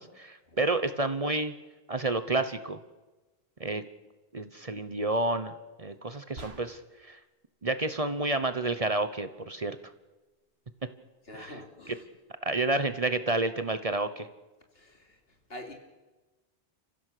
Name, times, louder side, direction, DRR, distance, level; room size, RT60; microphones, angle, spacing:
voice 1, 0.0-1.5 1.9-2.8 3.6-3.8 4.3-7.2 7.6-9.8 11.3-11.6 11.9-12.0 12.4-14.3, right 2 dB, 35° right, 11 dB, 1.1 m, -30 dB
sound 1, 6.4-7.1, right 1 dB, 75° right, 2.4 m, -47 dB
voice 2, 11.3-12.0 14.7-15.2 15.5-15.7, left 1 dB, 70° left, 3 dB, 3.3 m, -45 dB
29.5 x 15.5 x 6.8 m, 1.2 s
omnidirectional pair, 1.1 m